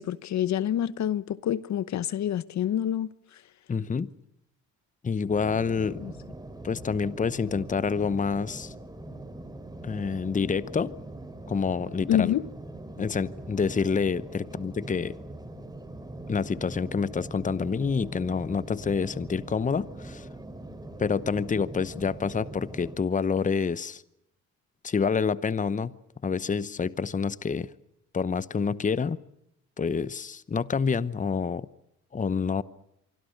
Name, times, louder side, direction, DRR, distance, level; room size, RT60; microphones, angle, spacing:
voice 1, 0.0-3.1 6.0-6.1 12.1-12.4, left 10 dB, 65° left, 1.0 m, -27 dB
voice 2, 3.7-4.1 5.0-6.0 6.6-8.7 9.8-10.9 11.5-12.4 13.0-15.2 16.3-20.3 21.0-24.0 24.8-25.9 26.2-27.7 28.1-29.2 29.8-31.7 32.1-32.6, left 5 dB, 25° left, 0.9 m, -27 dB
sound 1, 5.3-23.0, right 1 dB, 15° right, 3.3 m, -42 dB
25.5 x 25.0 x 6.6 m
cardioid pair, 90°, 30 cm